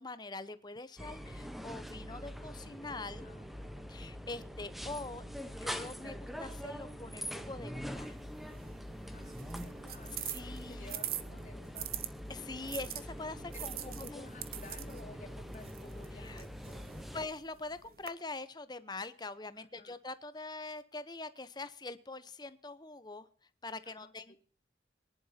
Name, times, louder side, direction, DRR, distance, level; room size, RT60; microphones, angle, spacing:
voice 1, 0.0-3.3 3.9-5.2 5.5-8.1 10.2-11.0 12.3-14.3 16.2-16.4 17.1-23.3 23.6-24.4, left 3 dB, 25° left, 13 dB, 0.9 m, -44 dB
sound 1, 1.0-17.3, equal, ahead, 1.0 m, -45 dB
sound 2, 1.1-17.6, equal, 30° right, 4.3 m, -51 dB
voice 2, 2.9-3.5 9.1-11.9 13.5-17.1 19.5-20.0 23.8-24.4, left 2 dB, 45° left, 0 dB, 2.9 m, -54 dB
sound 3, 7.9-12.1 12.7-18.1, right 12 dB, 55° right, 1.1 m, -44 dB
24.0 x 11.0 x 2.8 m, 0.42 s
head